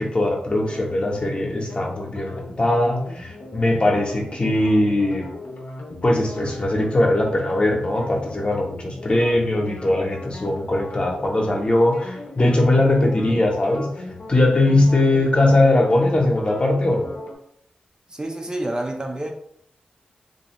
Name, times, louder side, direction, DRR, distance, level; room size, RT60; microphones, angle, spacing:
voice 1, 0.0-5.3 6.0-13.9 14.3-17.1, left 1 dB, 40° left, 0.8 m, -20 dB
sound 1, 0.5-17.4, left 2 dB, 70° left, 0.6 m, -37 dB
voice 2, 18.1-19.3, right 1 dB, 25° right, 0.4 m, -28 dB
2.5 x 2.4 x 3.0 m
cardioid pair, 45°, 3 cm